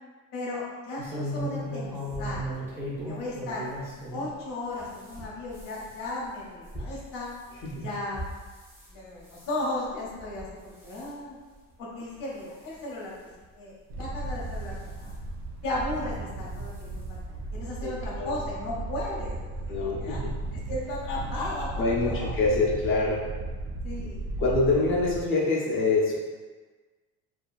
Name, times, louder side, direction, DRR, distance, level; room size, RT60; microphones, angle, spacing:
voice 1, 0.3-2.4 3.1-3.7 4.1-7.3 7.8-8.2 8.9-11.4 11.8-13.3 13.6-14.7 15.0-15.1 15.6-20.2 20.7-22.3 23.8-24.2, left 2 dB, 65° left, -5 dB, 0.8 m, -35 dB
sound 1, 1.0-4.3 4.7-8.9 9.3-9.6 10.2-10.5 10.8-11.1 11.7-11.8 12.2-12.3 13.4-13.5 14.3-15.1 16.2-16.4 16.8-16.9 17.2-17.3, equal, 10° right, 0.6 m, -37 dB
Wind, 13.9-25.2, right 2 dB, 70° right, 0.6 m, -35 dB
voice 2, 17.8-18.3 19.7-20.3 21.8-23.2 24.4-26.1, left 3 dB, 35° left, -4 dB, 0.6 m, -25 dB
2.8 x 2.4 x 2.4 m, 1.3 s
cardioid pair, 120°, 36 cm